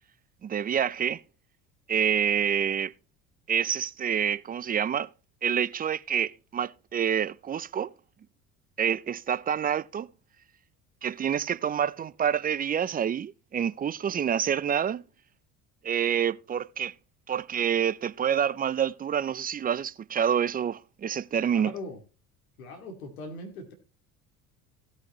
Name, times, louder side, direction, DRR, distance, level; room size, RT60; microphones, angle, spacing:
voice 1, 0.4-1.2 1.9-2.9 3.5-5.1 5.4-7.9 8.8-10.1 11.0-15.0 15.8-16.9 17.3-21.7, right 8 dB, 20° right, 0.5 m, -27 dB
voice 2, 21.5-22.0 22.6-23.7, left 2 dB, 80° left, 2.4 m, -40 dB
16.5 x 6.5 x 3.0 m
hypercardioid pair, 65°, 43 cm